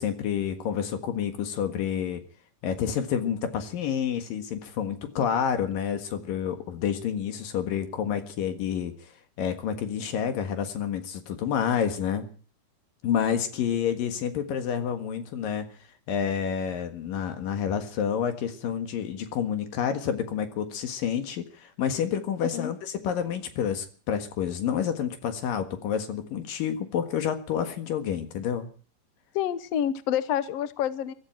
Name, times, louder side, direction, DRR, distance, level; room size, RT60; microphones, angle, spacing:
voice 1, 0.0-2.2 2.6-9.1 9.4-12.3 13.0-15.7 16.1-28.7, left 8 dB, 85° left, 7 dB, 3.4 m, -29 dB
voice 2, 29.3-31.1, left 10 dB, 70° left, 13 dB, 1.6 m, -28 dB
22.5 x 14.0 x 4.5 m, 0.42 s
omnidirectional pair, 3.9 m